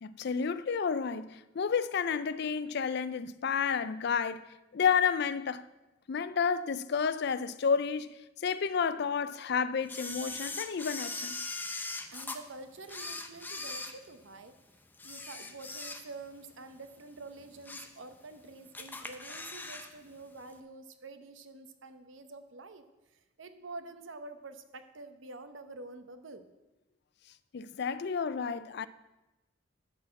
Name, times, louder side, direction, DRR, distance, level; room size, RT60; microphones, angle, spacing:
voice 1, 0.0-5.7 6.1-11.5 27.5-28.9, left 6 dB, 55° left, 0.4 m, -31 dB
Camera, 9.9-12.4 12.8-14.5 14.9-16.3 16.7-16.9 17.4-18.0 18.3-18.4 18.7-19.9 20.2-20.3, left 3 dB, 10° left, 0.6 m, -40 dB
voice 2, 12.1-14.5 15.0-22.8 23.1-26.5, right 3 dB, 75° right, 0.9 m, -47 dB
12.5 x 4.2 x 7.5 m
head